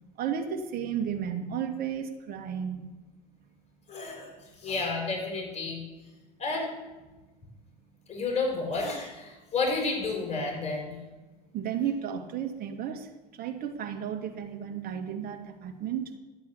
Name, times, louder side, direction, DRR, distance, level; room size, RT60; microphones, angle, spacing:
voice 1, 0.2-2.9 11.5-16.1, right 8 dB, 45° right, 4 dB, 2.2 m, -33 dB
voice 2, 3.9-4.3 4.6-5.8 6.4-6.7 8.1-11.0, left 3 dB, 30° left, 1 dB, 6.2 m, -31 dB
12.5 x 8.4 x 8.2 m, 1.1 s
hypercardioid pair, 80°, 21 cm